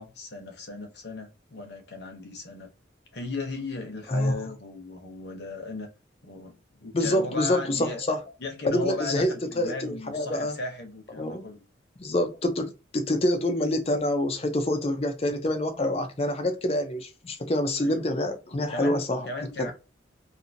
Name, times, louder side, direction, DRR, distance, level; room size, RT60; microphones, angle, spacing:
voice 1, 0.0-2.7 3.1-5.9 6.2-8.0 8.4-11.6 17.8-19.7, left 3 dB, 60° left, 0.9 m, -36 dB
voice 2, 6.9-8.2 8.6-10.6 11.2-11.4 12.0-19.3 19.6-19.7, left 1 dB, 30° left, 0.5 m, -26 dB
2.6 x 2.6 x 2.6 m
head